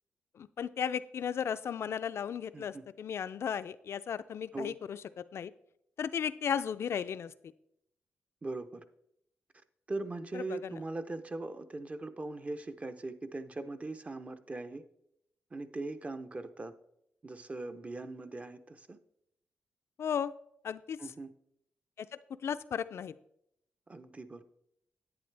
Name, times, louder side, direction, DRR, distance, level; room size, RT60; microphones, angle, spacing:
voice 1, 0.3-5.0 5.3-5.5 6.0-7.3 10.3-10.7 20.0-20.3 20.6-21.0 22.0-22.1 22.4-23.1, left 8 dB, 65° left, 14 dB, 0.4 m, -35 dB
voice 2, 2.5-2.8 4.5-4.8 8.4-8.8 9.9-14.8 15.5-16.7 17.2-19.0 21.0-21.3 23.9-24.4, right 2 dB, 30° right, 10 dB, 0.7 m, -40 dB
10.5 x 8.6 x 3.4 m, 0.77 s
cardioid pair, 80°, 5 cm